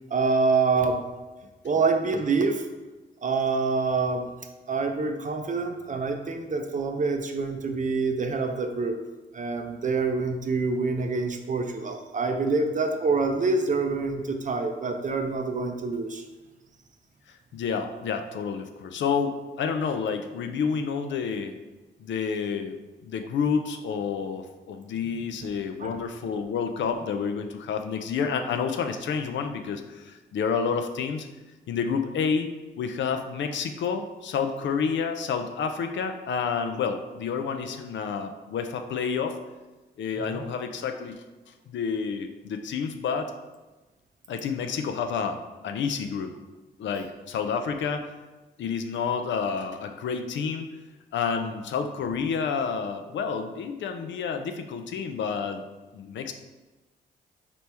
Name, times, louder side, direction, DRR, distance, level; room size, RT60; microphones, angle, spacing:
voice 1, 0.1-1.0 1.6-2.7 3.2-4.3 4.7-9.0 9.3-16.2 25.8-25.9 40.2-40.5, right 4 dB, 40° right, 5 dB, 0.5 m, -26 dB
voice 2, 17.3-21.5 22.0-22.8 23.0-31.3 31.7-32.5 32.8-39.4 40.0-41.2 41.7-43.3 44.3-46.3 46.8-48.1 48.6-50.7 51.1-55.6 55.9-56.3, left 6 dB, 70° left, 6 dB, 0.5 m, -29 dB
4.3 x 3.0 x 3.4 m, 1.2 s
supercardioid pair, 55°, 20 cm